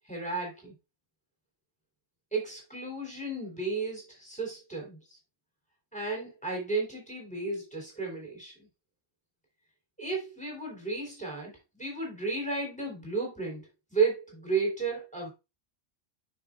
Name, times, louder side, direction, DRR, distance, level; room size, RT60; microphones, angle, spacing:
voice 1, 0.1-0.7 2.3-5.0 5.9-8.7 10.0-15.3, right 4 dB, 5° left, -1 dB, 3.7 m, -33 dB
9.2 x 5.9 x 2.5 m, 0.25 s
omnidirectional pair, 1.3 m